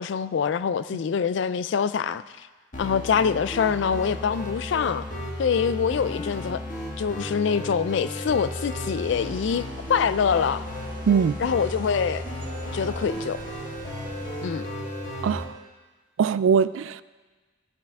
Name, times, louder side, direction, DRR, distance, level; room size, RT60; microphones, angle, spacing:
voice 1, 0.0-2.2 2.8-5.1 5.4-6.6 7.0-10.6 11.4-12.2 12.7-13.4 14.4-14.7, left 6 dB, 70° left, 0.4 m, -25 dB
sound 1, 2.7-15.4, left 1 dB, 45° left, 1.7 m, -34 dB
sound 2, 8.7-14.5, right 2 dB, 45° right, 1.4 m, -45 dB
voice 2, 11.1-11.4 15.2-15.5 16.2-17.0, right 6 dB, 85° right, 0.3 m, -21 dB
15.0 x 7.7 x 3.5 m
head